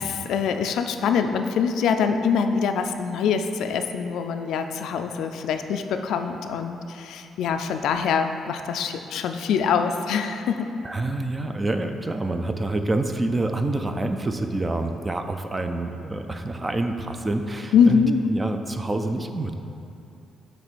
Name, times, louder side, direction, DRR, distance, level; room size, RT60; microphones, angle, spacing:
voice 1, 0.0-10.7 17.7-18.2, left 6 dB, 80° left, 7 dB, 0.4 m, -24 dB
voice 2, 10.8-19.5, right 2 dB, 15° right, 7 dB, 0.4 m, -27 dB
7.4 x 3.2 x 6.2 m, 2.6 s
cardioid pair, 145°, 0 cm